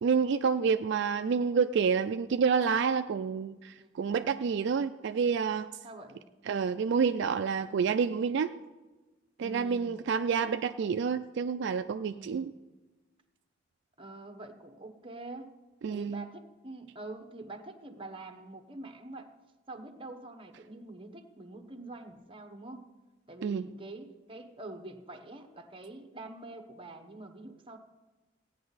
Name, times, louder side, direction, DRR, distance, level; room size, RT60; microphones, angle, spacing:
voice 1, 0.0-5.7 6.5-8.5 9.4-12.5 15.8-16.2 23.4-23.7, right 6 dB, 65° right, 9 dB, 0.3 m, -28 dB
voice 2, 3.8-4.1 5.8-6.2 9.4-10.0 12.1-12.5 14.0-15.5 15.9-19.3 19.7-22.9 23.3-27.8, right 2 dB, 30° right, 6 dB, 1.0 m, -45 dB
16.0 x 9.3 x 4.0 m, 1.2 s
head